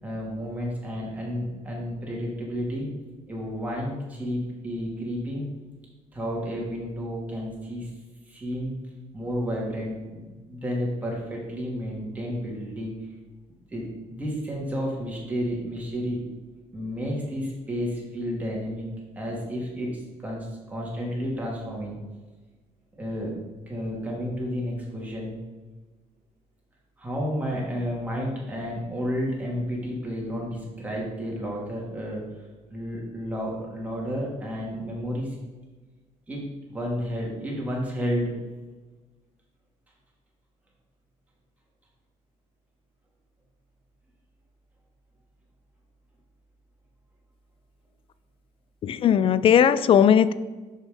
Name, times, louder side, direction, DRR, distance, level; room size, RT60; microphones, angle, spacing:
voice 1, 0.0-2.9 3.3-5.4 6.1-7.9 8.3-8.7 9.1-13.0 13.7-16.2 16.7-22.0 22.9-23.3 23.7-25.4 27.0-32.2 32.7-35.4 36.3-38.3, equal, 10° right, -4 dB, 2.4 m, -31 dB
voice 2, 48.8-50.3, left 8 dB, 45° left, 15 dB, 0.4 m, -18 dB
6.0 x 5.7 x 5.0 m, 1.2 s
cardioid pair, 120°, 13 cm